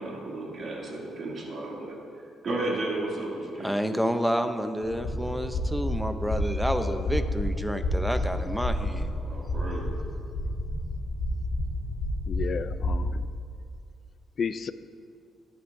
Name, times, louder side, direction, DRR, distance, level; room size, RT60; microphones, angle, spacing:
voice 1, 0.0-2.0 2.4-3.7 9.2-9.9, right 2 dB, 50° right, -3 dB, 2.5 m, -33 dB
voice 2, 3.6-9.1, equal, ahead, 8 dB, 0.6 m, -29 dB
sound 1, 4.8-13.0, left 1 dB, 75° left, 1.9 m, -30 dB
voice 3, 6.7-7.1 12.3-13.2 14.4-14.7, left 6 dB, 50° left, 14 dB, 0.4 m, -33 dB
14.0 x 10.5 x 2.7 m, 2.4 s
cardioid pair, 90°, 0 cm